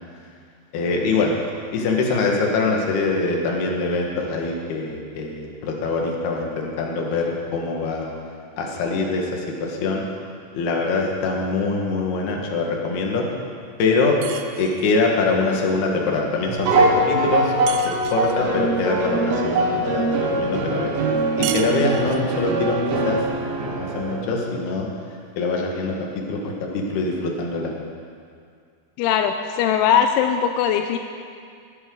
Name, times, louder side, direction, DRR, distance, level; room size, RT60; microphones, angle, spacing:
voice 1, 0.7-1.4 1.7-8.1 8.6-10.0 10.5-13.3 13.8-14.2 14.6-17.5 17.8-21.0 21.4-23.2 23.7-24.9 25.4-26.0 26.3-27.7, left 3 dB, 65° left, 0 dB, 3.4 m, -23 dB
sound 1, 14.2-15.1 17.7-18.4 21.4-22.4, right 10 dB, 80° right, 2.4 m, -33 dB
sound 2, 16.5-24.2, right 2 dB, 65° right, 3.0 m, -22 dB
voice 2, 29.0-31.0, left 8 dB, 85° left, 6 dB, 3.0 m, -20 dB
15.5 x 15.5 x 3.9 m, 2.2 s
omnidirectional pair, 5.4 m